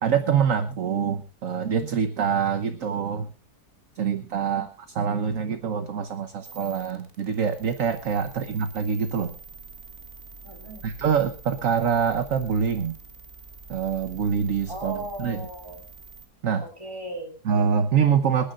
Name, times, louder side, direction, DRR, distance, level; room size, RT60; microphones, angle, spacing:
voice 1, 0.0-3.3 4.0-4.7 4.9-9.3 10.8-13.0 13.7-15.5 16.4-16.6 17.4-18.5, right 7 dB, 60° right, 7 dB, 1.3 m, -25 dB
voice 2, 4.3-4.7 10.4-10.9 14.7-15.8 16.6-17.4, right 2 dB, 15° right, 1 dB, 4.2 m, -37 dB
sound 1, 6.4-16.3, right 3 dB, 40° right, 1.5 m, -46 dB
27.5 x 10.0 x 2.5 m, 0.32 s
omnidirectional pair, 1.7 m